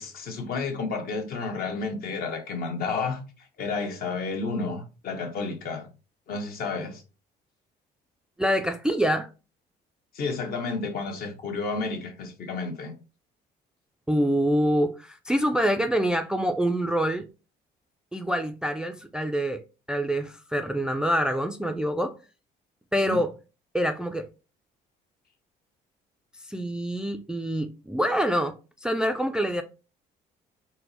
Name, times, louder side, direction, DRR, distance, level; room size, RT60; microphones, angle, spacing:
voice 1, 0.0-5.9 6.3-7.0 10.1-12.9 23.0-23.2, left 4 dB, 60° left, 1.1 m, -31 dB
voice 2, 8.4-9.3 14.1-17.2 18.1-19.6 19.9-22.2 22.9-23.3 23.7-24.3 26.5-29.6, equal, 5° right, 0.3 m, -26 dB
4.4 x 2.1 x 4.0 m
cardioid pair, 110°, 17 cm